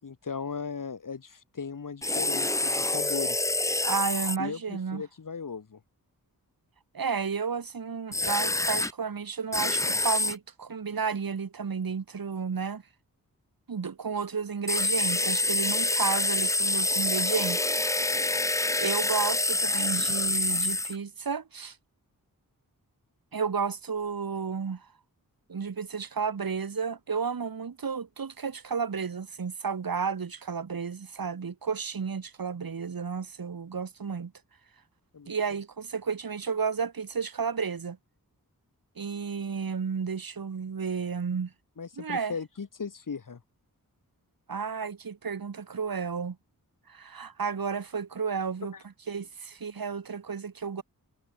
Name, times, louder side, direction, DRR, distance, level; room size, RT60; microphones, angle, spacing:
voice 1, 0.0-3.4 4.4-5.8 35.1-35.3 41.8-43.4, left 5 dB, 65° left, 3.9 m, -37 dB
sound 1, 2.0-4.4 8.1-8.9 9.5-10.3 14.7-20.9, left 2 dB, 10° left, 0.4 m, -27 dB
voice 2, 3.8-5.0 6.9-12.8 13.7-17.6 18.8-21.8 23.3-24.9 25.5-34.3 35.3-38.0 39.0-41.5 42.0-42.3 44.5-46.4 46.9-48.7 49.1-50.8, right 6 dB, 75° right, 7.1 m, -32 dB
wide cardioid pair, 125°, 35 cm